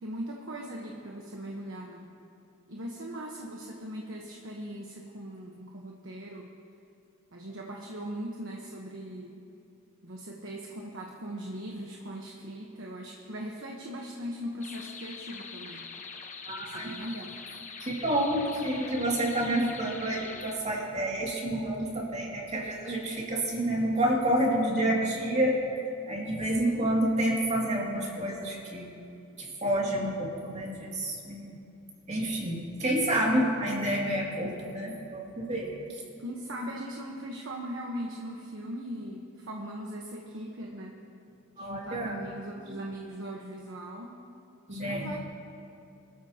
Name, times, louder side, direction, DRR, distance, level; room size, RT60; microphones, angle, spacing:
voice 1, 0.0-2.1 2.7-6.5 7.3-9.4 10.0-15.9 16.6-17.4 26.6-27.0 36.2-41.0 41.6-44.2 44.7-45.2, equal, 65° right, -1 dB, 1.2 m, -39 dB
sound 1, 14.6-20.5, left 5 dB, 35° left, 1.0 m, -43 dB
voice 2, 16.4-16.9 17.8-28.9 29.4-31.6 32.1-35.7 41.6-42.2 42.7-42.8 44.7-45.1, right 1 dB, 35° right, -3 dB, 2.5 m, -29 dB
24.5 x 13.5 x 3.0 m, 2.8 s
head